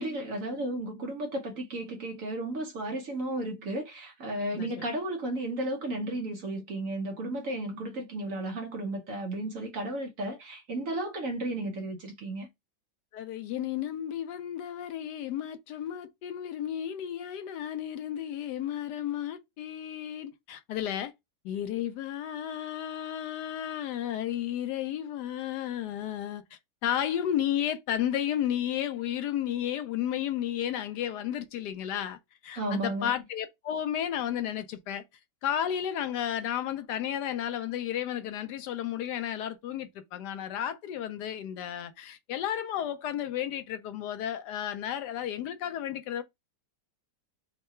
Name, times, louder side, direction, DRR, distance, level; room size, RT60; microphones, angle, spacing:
voice 1, 0.0-12.5 32.6-33.2, right 1 dB, 55° right, 1.1 m, -34 dB
voice 2, 4.5-4.9 13.1-21.1 21.4-35.0 35.4-46.2, left 10 dB, 75° left, 1.1 m, -33 dB
3.7 x 2.2 x 4.1 m
omnidirectional pair, 1.9 m